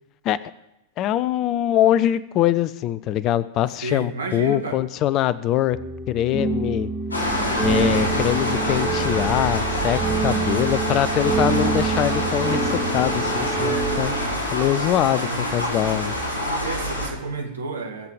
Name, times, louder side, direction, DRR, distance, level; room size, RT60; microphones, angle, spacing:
voice 1, 1.0-5.8 6.1-6.9 7.6-14.1 14.5-16.1, left 12 dB, 35° left, 18 dB, 0.6 m, -23 dB
voice 2, 3.8-4.8 10.0-10.5 14.8-15.5 16.6-18.1, right 3 dB, 70° right, 4 dB, 2.0 m, -32 dB
sound 1, 5.7-14.3, right 5 dB, ahead, 2.5 m, -27 dB
sound 2, 7.1-17.1, left 1 dB, 75° left, 5.2 m, -26 dB
22.0 x 7.6 x 5.0 m, 0.90 s
figure-of-eight pair, 90°, 0 cm